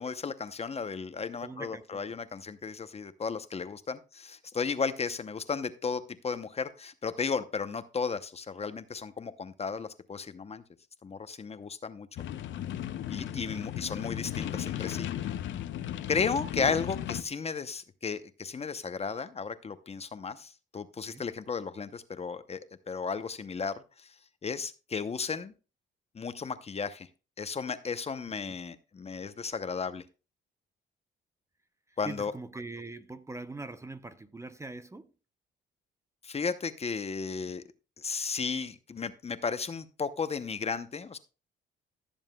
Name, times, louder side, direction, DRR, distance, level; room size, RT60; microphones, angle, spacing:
voice 1, 0.0-10.6 11.0-12.1 13.1-15.1 16.1-22.6 22.9-24.1 24.4-25.5 26.1-27.1 27.4-30.0 32.0-32.3 36.2-37.6 38.0-41.2, left 5 dB, 30° left, 0.7 m, -34 dB
voice 2, 1.4-2.0 12.5-12.6 16.6-16.8 21.1-21.2 28.4-28.6 31.9-35.1, right 2 dB, 15° right, 0.6 m, -42 dB
sound 1, 12.2-17.2, left 11 dB, 70° left, 0.7 m, -35 dB
16.0 x 7.2 x 2.3 m
cardioid pair, 90°, 20 cm